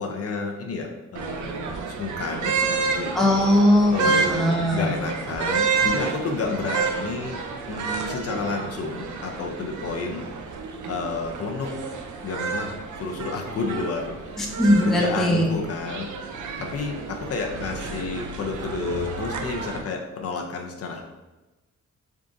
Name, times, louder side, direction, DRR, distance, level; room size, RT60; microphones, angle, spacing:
voice 1, 0.0-3.2 3.9-7.4 7.7-10.2 10.9-11.8 12.2-14.2 14.8-16.1 16.6-21.0, left 4 dB, 50° left, 2 dB, 0.5 m, -30 dB
sound 1, 1.1-19.8, right 4 dB, 75° right, 0.5 m, -30 dB
voice 2, 3.1-4.9 14.4-15.5, left 1 dB, ahead, -1 dB, 0.4 m, -20 dB
3.5 x 2.5 x 3.8 m, 1.1 s
wide cardioid pair, 170°, 30 cm